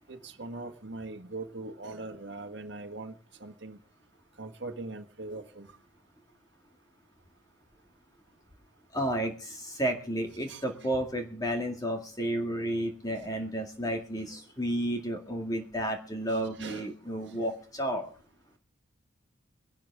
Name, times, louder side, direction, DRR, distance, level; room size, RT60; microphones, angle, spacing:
voice 1, 0.1-3.8 4.4-5.7 10.5-10.6 13.9-14.0 14.3-14.4 16.3-16.9, right 2 dB, 60° right, 5 dB, 1.6 m, -41 dB
voice 2, 8.9-18.1, right 1 dB, 20° left, 3 dB, 2.0 m, -32 dB
22.5 x 12.0 x 3.6 m, 0.41 s
head